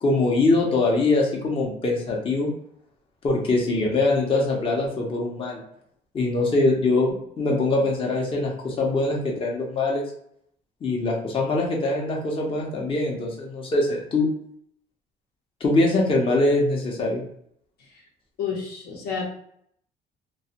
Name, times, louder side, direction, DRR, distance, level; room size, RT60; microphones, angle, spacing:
voice 1, 0.0-2.5 3.2-5.6 6.1-10.0 10.8-14.3 15.6-17.2, left 2 dB, 30° left, -1 dB, 0.6 m, -23 dB
voice 2, 18.4-19.2, left 6 dB, 70° left, -1 dB, 0.8 m, -29 dB
2.2 x 2.1 x 2.8 m, 0.70 s
cardioid pair, 110°, 17 cm